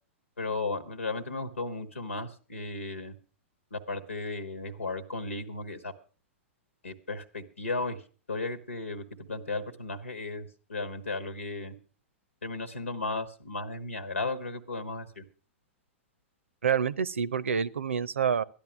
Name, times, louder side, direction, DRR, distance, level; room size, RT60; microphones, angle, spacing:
voice 1, 0.4-3.1 3.7-5.9 6.8-8.0 8.3-11.7 12.4-15.2, left 3 dB, 85° left, 10 dB, 1.4 m, -35 dB
voice 2, 16.6-18.4, right 7 dB, 75° right, 20 dB, 0.7 m, -27 dB
13.5 x 10.5 x 6.0 m, 0.39 s
figure-of-eight pair, 105°, 7 cm